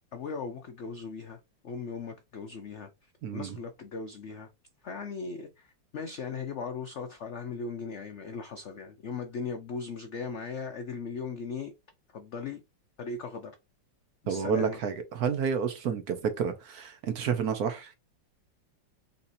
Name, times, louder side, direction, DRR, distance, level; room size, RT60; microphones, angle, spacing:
voice 1, 0.1-2.9 3.3-4.5 4.8-11.7 12.1-12.6 13.0-13.6 14.2-14.8, left 5 dB, 80° left, 0.6 m, -38 dB
voice 2, 3.2-3.6 14.3-17.9, right 7 dB, 60° right, 1.1 m, -30 dB
4.1 x 4.1 x 2.6 m
omnidirectional pair, 2.0 m